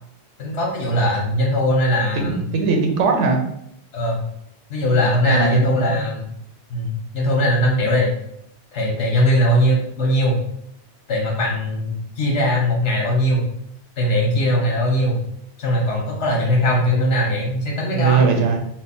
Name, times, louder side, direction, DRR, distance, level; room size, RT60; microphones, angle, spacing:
voice 1, 0.4-2.4 3.9-4.2 4.7-6.3 6.7-8.1 8.7-10.4 11.1-13.4 14.0-15.2 15.6-18.2, equal, 85° left, -1 dB, 1.3 m, -20 dB
voice 2, 2.1-3.4 5.2-6.1 17.9-18.6, right 5 dB, 85° right, 3 dB, 1.0 m, -19 dB
3.4 x 2.1 x 4.1 m, 0.73 s
omnidirectional pair, 1.2 m